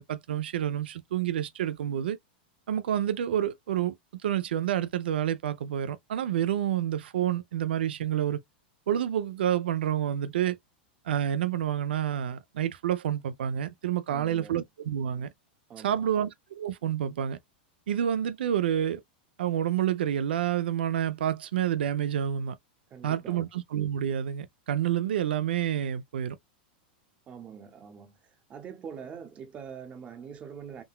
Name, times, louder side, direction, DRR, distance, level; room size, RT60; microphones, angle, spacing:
voice 1, 0.0-2.2 2.7-8.4 8.9-10.6 11.0-15.3 15.8-17.4 17.9-19.0 19.4-22.6 23.0-26.4, right 10 dB, 90° right, 0.4 m, -28 dB
voice 2, 14.1-14.6 15.7-16.1 22.9-23.5 27.3-30.8, right 7 dB, 20° right, 0.7 m, -44 dB
3.7 x 2.2 x 2.2 m
supercardioid pair, 150°, 5 cm